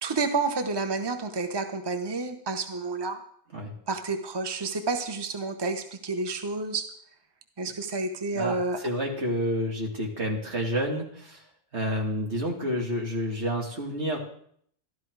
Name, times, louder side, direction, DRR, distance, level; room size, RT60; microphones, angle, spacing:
voice 1, 0.0-3.2 3.9-6.8 7.6-8.8, right 3 dB, 25° right, 7 dB, 1.0 m, -30 dB
voice 2, 8.8-11.4 11.7-14.2, equal, 80° right, 0 dB, 3.0 m, -29 dB
13.0 x 12.5 x 4.8 m, 0.65 s
omnidirectional pair, 1.1 m